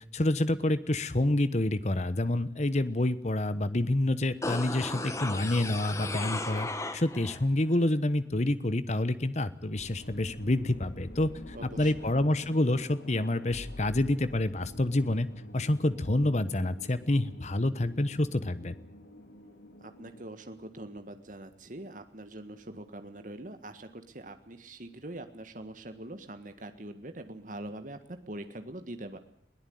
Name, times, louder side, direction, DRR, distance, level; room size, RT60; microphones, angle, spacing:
voice 1, 0.1-15.3 15.5-18.7, left 1 dB, 40° left, 14 dB, 1.1 m, -28 dB
sound 1, 4.4-7.4 7.7-7.8, left 2 dB, 15° left, 1.5 m, -35 dB
sound 2, 9.7-20.2, left 1 dB, 90° left, 2.6 m, -47 dB
voice 2, 11.5-12.1 19.8-29.2, right 1 dB, 45° right, 8 dB, 1.7 m, -43 dB
21.5 x 17.0 x 9.5 m, 0.67 s
head